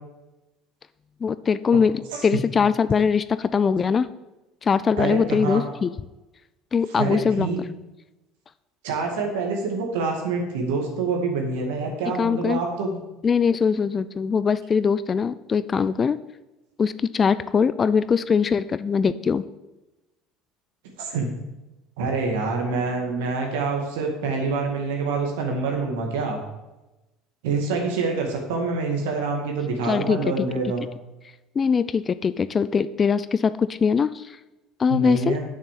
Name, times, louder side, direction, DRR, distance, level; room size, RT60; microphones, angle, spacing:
voice 1, 1.2-4.1 4.6-5.9 6.7-7.5 12.2-12.6 13.2-16.2 16.8-19.4 29.9-30.5 31.6-34.4 34.8-35.4, left 6 dB, 35° left, 15 dB, 0.5 m, -22 dB
voice 2, 5.0-5.6 6.9-7.6 8.8-13.0 21.0-21.3 22.0-26.4 27.4-30.9 34.9-35.4, right 4 dB, 80° right, 1 dB, 2.1 m, -26 dB
6.9 x 6.6 x 7.4 m, 1.0 s
hypercardioid pair, 75°, 0 cm